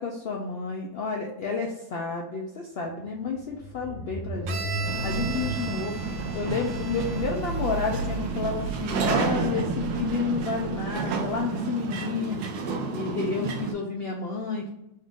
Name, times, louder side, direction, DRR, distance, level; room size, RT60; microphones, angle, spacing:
voice 1, 0.0-4.6 5.0-6.0 6.3-12.4 12.9-14.7, left 4 dB, 70° left, -1 dB, 0.5 m, -30 dB
sound 1, 3.0-11.4, right 2 dB, 90° left, 1.7 m, -35 dB
Bowed string instrument, 4.5-8.2, right 6 dB, 65° right, 0.8 m, -38 dB
sound 2, 4.8-13.7, right 4 dB, 85° right, 1.2 m, -31 dB
4.2 x 2.5 x 3.5 m, 0.84 s
omnidirectional pair, 1.6 m